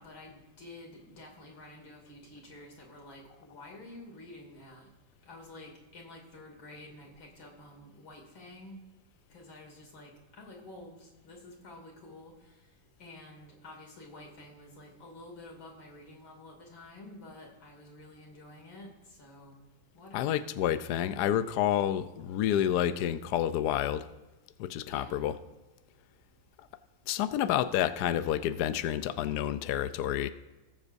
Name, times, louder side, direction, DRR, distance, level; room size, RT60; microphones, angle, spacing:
voice 1, 0.0-4.9 5.2-8.8 9.3-12.5 13.0-19.6 19.9-20.5 24.8-25.2, left 1 dB, 90° left, 0 dB, 3.4 m, -50 dB
voice 2, 20.1-24.1 24.6-25.4 27.1-30.3, left 11 dB, 70° left, 12 dB, 1.0 m, -29 dB
19.5 x 7.5 x 2.6 m, 1.1 s
omnidirectional pair, 2.1 m